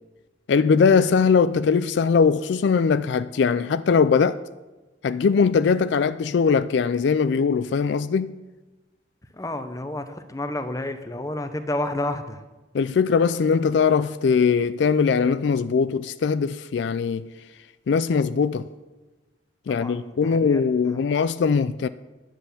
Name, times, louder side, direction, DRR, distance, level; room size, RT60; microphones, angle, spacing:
voice 1, 0.5-4.4 5.0-8.4 12.7-17.3 17.9-18.7 19.7-21.9, left 5 dB, 70° left, 0.3 m, -21 dB
voice 2, 9.3-12.4 19.7-20.7, left 1 dB, 15° left, 0.7 m, -30 dB
10.5 x 7.6 x 6.9 m
head